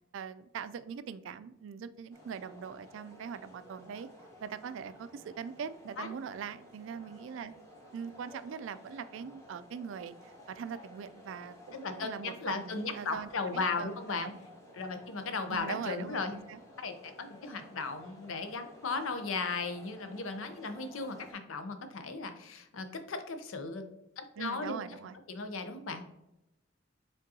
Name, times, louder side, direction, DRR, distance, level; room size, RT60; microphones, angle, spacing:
voice 1, 0.1-4.1 4.4-7.5 7.9-10.1 10.5-13.9 14.2-14.3 15.5-16.6 24.4-25.2, right 7 dB, 70° right, 13 dB, 0.3 m, -41 dB
sound 1, 2.1-21.3, equal, 15° left, 1.0 m, -54 dB
voice 2, 11.8-14.3 14.7-16.3 16.8-23.9 24.2-24.8 25.3-26.0, left 4 dB, 85° left, 8 dB, 0.6 m, -36 dB
5.1 x 3.7 x 2.7 m, 0.91 s
head